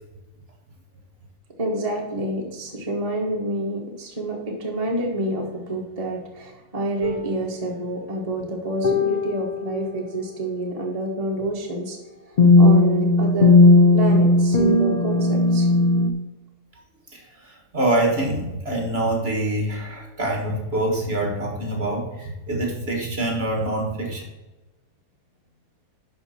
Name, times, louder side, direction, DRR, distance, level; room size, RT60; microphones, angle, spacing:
voice 1, 1.6-12.0 12.6-13.5 13.9-15.7, right 1 dB, 25° right, -1 dB, 1.4 m, -28 dB
sound 1, 7.0-7.3 8.8-9.9 12.4-16.1, left 2 dB, 60° left, 0.4 m, -16 dB
voice 2, 17.1-24.2, right 1 dB, 40° right, 1 dB, 1.7 m, -25 dB
11.0 x 5.2 x 4.2 m, 1.1 s
omnidirectional pair, 1.7 m